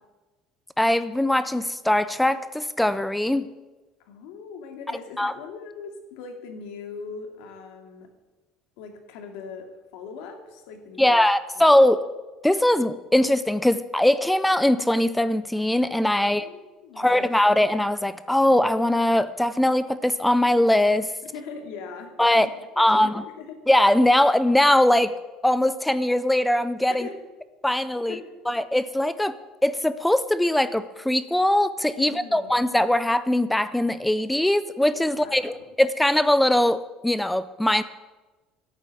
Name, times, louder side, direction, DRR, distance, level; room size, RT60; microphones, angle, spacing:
voice 1, 0.8-3.5 5.2-5.3 11.0-12.1 12.4-16.5 17.0-21.1 22.2-22.5 22.8-23.2 23.7-25.1 25.4-27.1 27.6-28.2 28.5-29.3 29.6-37.8, left 1 dB, 5° left, 14 dB, 0.4 m, -21 dB
voice 2, 4.0-8.1 8.8-9.7 9.9-11.3 11.6-11.7 16.2-17.3 21.3-23.1 23.4-23.6 26.9-27.1 28.1-28.4 32.0-32.5 35.1-35.7, left 5 dB, 80° left, 5 dB, 2.3 m, -40 dB
11.0 x 9.1 x 8.5 m, 1.2 s
cardioid pair, 165°, 0 cm